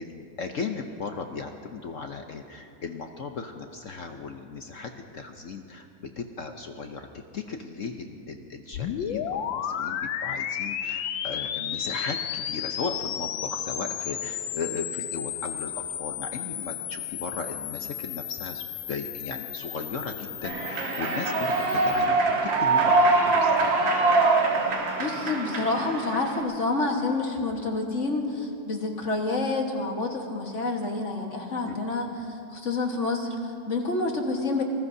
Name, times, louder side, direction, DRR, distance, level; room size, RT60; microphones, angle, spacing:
voice 1, 0.0-7.1 7.3-15.7 16.0-22.9 23.2-23.7 31.7-31.8, left 4 dB, 55° left, 5 dB, 0.9 m, -36 dB
sound 1, 8.7-22.1, left 10 dB, 90° left, 1.5 m, -33 dB
Human voice / Clapping / Cheering, 20.4-26.4, right 3 dB, 85° right, 2.2 m, -23 dB
voice 2, 25.0-34.6, left 3 dB, 40° left, 2 dB, 1.7 m, -28 dB
26.0 x 19.5 x 2.7 m, 2.5 s
omnidirectional pair, 2.0 m